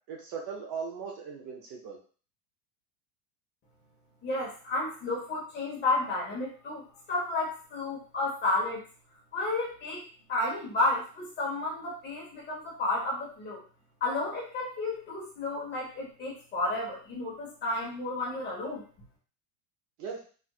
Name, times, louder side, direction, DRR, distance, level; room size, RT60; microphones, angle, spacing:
voice 1, 0.1-2.0 20.0-20.2, right 6 dB, 40° right, 0 dB, 0.6 m, -38 dB
voice 2, 4.2-8.8 9.3-13.6 14.0-18.8, left 2 dB, 20° left, -3 dB, 1.0 m, -32 dB
4.3 x 2.5 x 2.3 m, 0.40 s
supercardioid pair, 155°, 46 cm